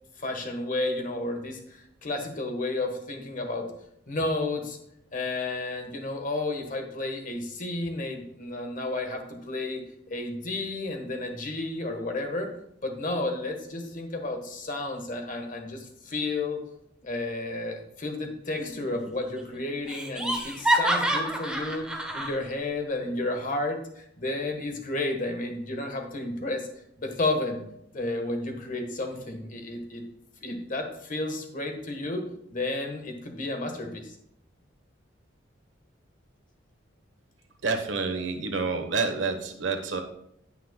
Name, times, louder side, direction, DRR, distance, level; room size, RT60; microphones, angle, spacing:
voice 1, 0.2-3.7 4.1-4.8 5.1-9.8 10.1-12.5 12.8-16.6 17.0-21.9 22.1-26.7 27.0-27.6 27.9-30.0 30.4-32.2 32.5-34.1, left 2 dB, 45° left, 4 dB, 1.4 m, -32 dB
Laughter, 18.6-19.1 19.4-19.5 19.9-22.4, right 1 dB, 5° right, 1.0 m, -27 dB
voice 2, 37.6-40.0, right 4 dB, 85° right, 5 dB, 1.2 m, -28 dB
16.0 x 5.8 x 2.3 m, 0.76 s
head